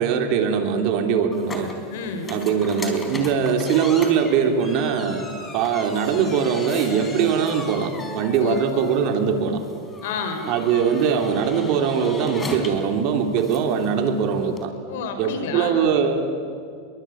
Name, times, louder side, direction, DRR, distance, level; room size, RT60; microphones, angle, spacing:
voice 1, 0.0-1.7 2.3-5.3 5.5-9.6 10.5-14.7 15.2-16.3, right 7 dB, 50° right, 4 dB, 3.5 m, -21 dB
sound 1, 1.3-14.7, left 2 dB, 15° left, 4.0 m, -37 dB
voice 2, 1.9-2.4 8.4-8.9 10.0-10.5 14.9-15.9, left 5 dB, 75° left, 7 dB, 4.6 m, -30 dB
27.0 x 23.0 x 8.9 m, 2.3 s
supercardioid pair, 140°, 0 cm